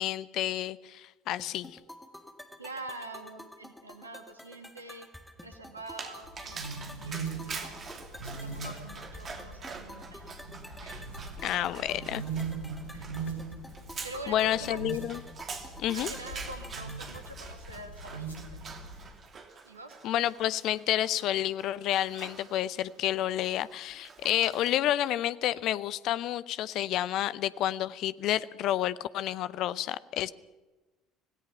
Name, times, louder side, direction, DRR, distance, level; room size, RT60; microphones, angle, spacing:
voice 1, 0.0-1.8 11.4-12.2 14.3-15.2 15.8-16.1 20.0-30.3, left 12 dB, 50° left, 17 dB, 0.7 m, -30 dB
sound 1, 1.4-17.4, left 1 dB, 5° left, 2.0 m, -50 dB
voice 2, 2.6-5.1 5.4-7.8 8.4-10.3 10.8-11.1 11.5-12.0 12.9-13.1 14.0-14.8 15.9-18.7 19.6-20.0, right 2 dB, 85° right, 6 dB, 2.3 m, -45 dB
Dog, 5.9-24.9, right 5 dB, 35° right, 2.9 m, -45 dB
sound 2, 6.2-19.1, right 4 dB, 85° left, 5.0 m, -41 dB
26.0 x 18.0 x 5.8 m, 1.1 s
figure-of-eight pair, 60°, 0 cm